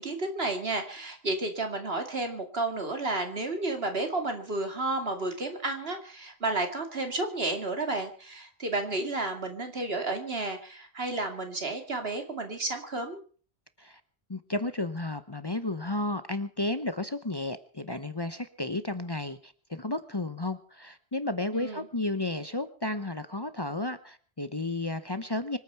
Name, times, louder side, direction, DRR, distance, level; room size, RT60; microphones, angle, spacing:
voice 1, 0.0-13.2 21.5-21.9, right 2 dB, 70° right, 5 dB, 2.7 m, -32 dB
voice 2, 14.3-25.6, left 2 dB, 25° left, 11 dB, 0.8 m, -33 dB
25.0 x 9.1 x 5.7 m, 0.43 s
omnidirectional pair, 1.1 m